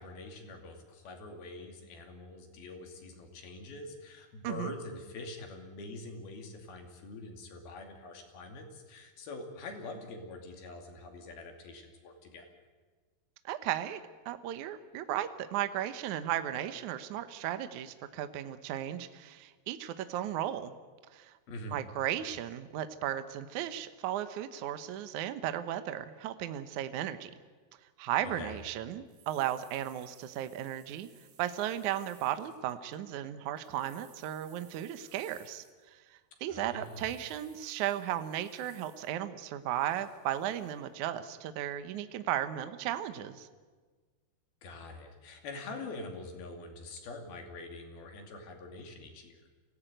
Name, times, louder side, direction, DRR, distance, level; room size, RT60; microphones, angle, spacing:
voice 1, 0.0-12.5 21.5-21.8 28.2-28.6 36.5-37.1 44.6-49.4, left 2 dB, 70° left, 4 dB, 4.4 m, -45 dB
voice 2, 13.5-20.8 21.1-21.3 21.7-27.3 28.0-31.1 31.4-43.5, right 11 dB, 70° right, 10 dB, 1.9 m, -35 dB
sound 1, 28.6-28.7 29.1-33.0 33.5-36.0 36.8-39.1 39.7-40.9 41.5-41.6, right 8 dB, 90° right, 4.5 m, -61 dB
26.0 x 17.5 x 9.1 m, 1.4 s
omnidirectional pair, 4.6 m